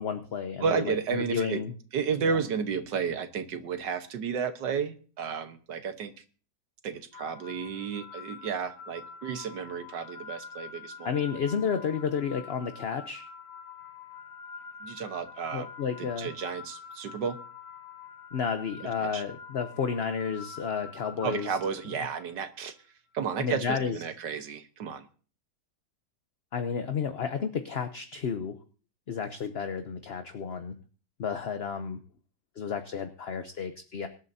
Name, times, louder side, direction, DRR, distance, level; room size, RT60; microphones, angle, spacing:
voice 1, 0.0-1.7 2.2-2.4 11.0-13.3 15.5-16.3 18.3-21.6 23.4-24.0 26.5-28.5 29.1-30.8 31.2-32.0 32.6-34.1, left 6 dB, 50° left, 8 dB, 0.8 m, -31 dB
voice 2, 0.6-1.6 1.9-6.1 6.8-11.4 14.8-15.7 16.0-17.4 19.1-19.2 21.2-22.7 23.1-25.0, right 6 dB, 85° right, 8 dB, 1.8 m, -32 dB
sound 1, 7.1-22.3, left 6 dB, 30° left, 5.3 m, -46 dB
25.5 x 11.5 x 2.7 m, 0.39 s
omnidirectional pair, 1.8 m